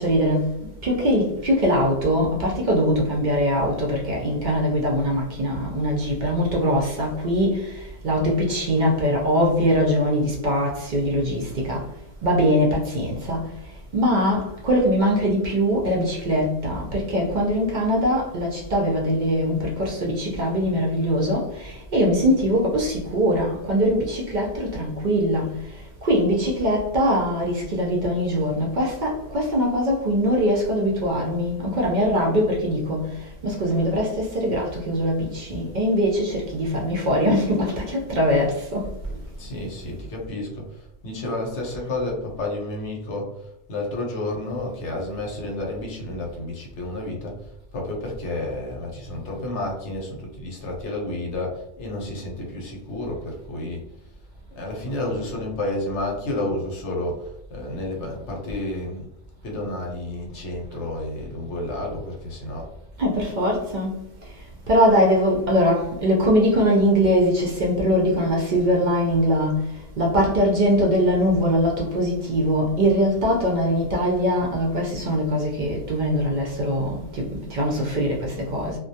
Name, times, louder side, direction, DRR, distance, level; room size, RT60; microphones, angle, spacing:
voice 1, 0.0-11.9 12.2-13.5 13.9-39.2 63.0-63.9 64.7-69.7 70.0-78.8, equal, 60° right, 0.4 m, -22 dB
voice 2, 39.4-53.8 54.6-59.0 59.4-62.7, left 1 dB, 75° left, 0.9 m, -31 dB
2.2 x 2.1 x 2.6 m
omnidirectional pair, 1.2 m